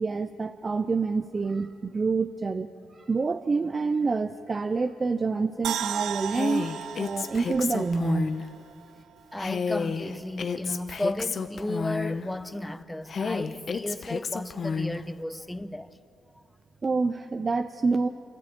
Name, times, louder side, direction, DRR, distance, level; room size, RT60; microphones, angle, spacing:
voice 1, 0.0-6.7 7.0-8.3 16.8-18.1, right 4 dB, 35° right, 0.6 m, -27 dB
sound 1, 5.6-8.9 9.2-9.3, right 9 dB, 75° right, 0.5 m, -35 dB
Female speech woman speaking, 6.3-8.5 9.4-12.3 13.1-15.0, left 5 dB, 50° left, 1.0 m, -31 dB
voice 2, 9.3-16.0, left 1 dB, 10° left, 0.9 m, -34 dB
27.0 x 13.0 x 8.8 m
cardioid pair, 85°, 0 cm